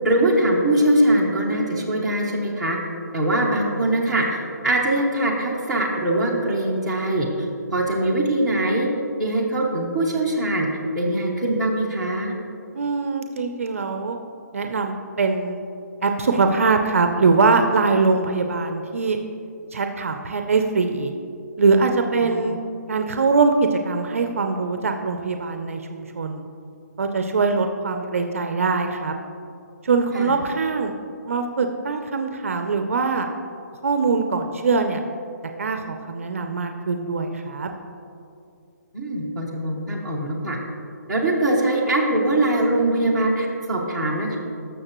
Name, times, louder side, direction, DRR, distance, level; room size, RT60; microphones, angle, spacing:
voice 1, 0.0-2.8 3.1-7.3 7.7-8.9 9.2-10.7 10.9-12.3 22.2-22.5 30.1-30.3 38.9-40.6 41.1-44.4, right 1 dB, ahead, -8 dB, 0.8 m, -22 dB
voice 2, 12.7-14.2 14.5-15.6 16.0-19.2 19.7-21.1 21.6-22.6 22.9-26.5 27.0-29.1 29.8-30.9 31.3-33.3 33.8-35.0 35.6-37.7, right 4 dB, 50° right, 5 dB, 0.5 m, -22 dB
13.0 x 6.4 x 3.0 m, 2.6 s
hypercardioid pair, 175°, 10 cm